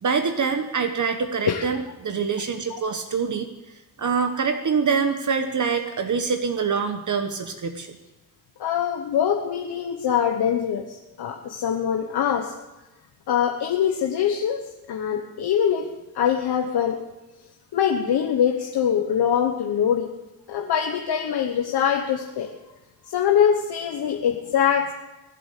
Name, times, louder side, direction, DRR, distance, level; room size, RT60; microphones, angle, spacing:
voice 1, 0.0-3.5 4.0-8.0, right 5 dB, 50° right, 7 dB, 1.2 m, -25 dB
voice 2, 1.5-1.8 2.7-2.8 8.6-12.5 13.3-14.6 14.9-15.9 16.1-17.0 17.7-20.1 20.5-22.5 23.0-24.9, left 8 dB, 80° left, 3 dB, 1.3 m, -23 dB
22.5 x 7.8 x 6.7 m, 1.0 s
cardioid pair, 70°, 38 cm